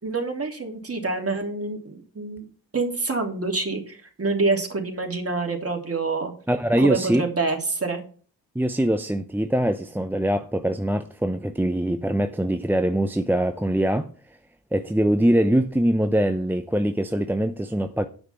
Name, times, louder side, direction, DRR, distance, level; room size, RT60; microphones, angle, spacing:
voice 1, 0.0-2.4 2.7-6.3 6.8-8.0, right 3 dB, 30° right, 3.1 m, -27 dB
voice 2, 6.5-7.2 8.5-14.1 14.7-18.1, right 1 dB, 5° right, 0.7 m, -23 dB
9.3 x 6.0 x 5.8 m
hypercardioid pair, 40°, 49 cm